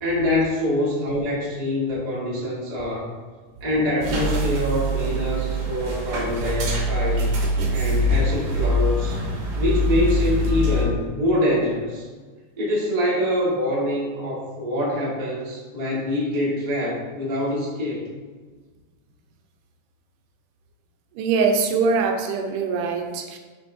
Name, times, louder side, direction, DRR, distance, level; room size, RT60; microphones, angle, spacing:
voice 1, 0.0-3.1 3.6-7.3 7.7-9.2 9.6-12.1 12.6-18.0, left 1 dB, 30° right, -6 dB, 0.7 m, -25 dB
sound 1, 4.0-10.8, equal, 70° right, 2.2 m, -23 dB
voice 2, 21.2-23.4, right 5 dB, 90° right, 5 dB, 2.2 m, -22 dB
6.4 x 5.9 x 2.6 m, 1.4 s
omnidirectional pair, 3.5 m